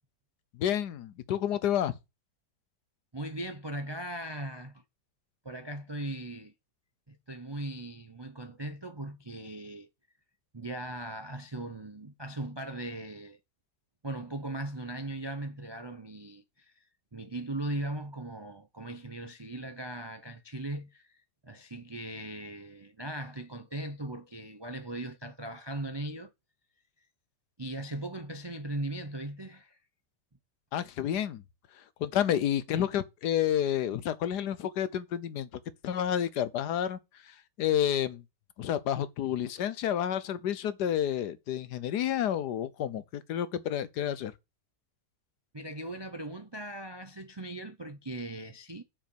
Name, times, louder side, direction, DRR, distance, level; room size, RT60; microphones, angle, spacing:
voice 1, 0.6-2.0 30.7-31.4 32.0-35.5 35.8-37.0 37.3-38.2 38.6-44.3, left 10 dB, 70° left, 1.4 m, -30 dB
voice 2, 3.1-4.8 5.4-6.5 7.1-9.9 10.5-13.4 14.0-16.8 17.1-21.2 21.4-26.3 27.6-29.8 45.5-48.8, right 1 dB, 40° right, 0.3 m, -39 dB
7.4 x 5.7 x 6.7 m
omnidirectional pair, 1.9 m